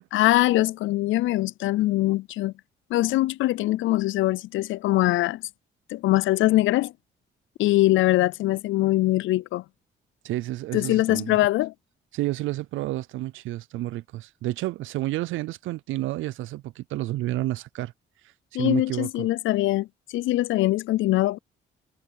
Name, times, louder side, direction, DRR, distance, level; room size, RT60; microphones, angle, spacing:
voice 1, 0.1-2.5 2.9-5.4 5.9-6.9 7.6-9.6 10.7-11.7 18.5-19.9 20.1-21.4, left 17 dB, 80° left, 0.4 m, -22 dB
voice 2, 10.2-11.4 12.1-17.9 18.2-19.3, right 16 dB, 80° right, 0.4 m, -30 dB
cardioid pair, 90°, 20 cm